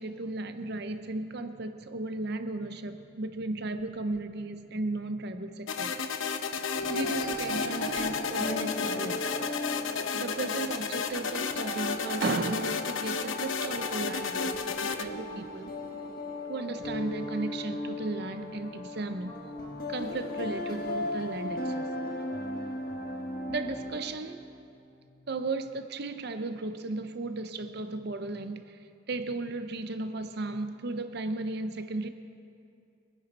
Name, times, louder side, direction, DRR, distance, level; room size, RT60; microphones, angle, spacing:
voice 1, 0.0-6.0 6.9-9.3 10.1-15.7 16.5-19.3 19.9-21.9 23.5-24.4 25.3-28.8 29.1-32.1, right 2 dB, 55° right, 9 dB, 0.7 m, -35 dB
sound 1, 5.7-15.0, left 6 dB, 85° left, 0.7 m, -33 dB
sound 2, 6.7-24.1, left 1 dB, 50° left, 1.4 m, -36 dB
sound 3, 19.2-21.5 22.3-25.6, equal, 15° left, 1.6 m, -50 dB
24.5 x 10.0 x 4.1 m, 2.5 s
head